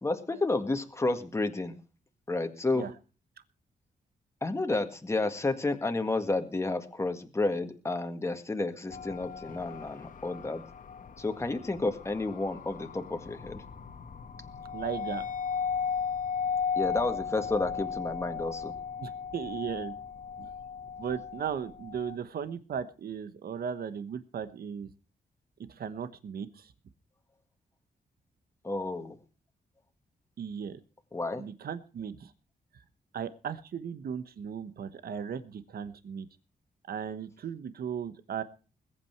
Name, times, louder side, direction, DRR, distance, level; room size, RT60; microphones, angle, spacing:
voice 1, 0.0-1.8 2.3-2.9 4.4-10.6 11.2-13.6 16.8-18.7 28.6-29.2 31.1-31.4, left 2 dB, 15° left, 6 dB, 1.7 m, -31 dB
sound 1, 8.9-22.2, left 6 dB, 55° left, 1.5 m, -36 dB
voice 2, 14.7-15.3 19.0-19.9 20.4-20.5 21.0-24.9 25.6-26.7 30.4-30.8 31.4-32.3 33.1-36.3 36.9-38.4, right 7 dB, 70° right, 12 dB, 1.1 m, -36 dB
21.0 x 8.8 x 4.6 m, 0.35 s
wide cardioid pair, 130°, 16 cm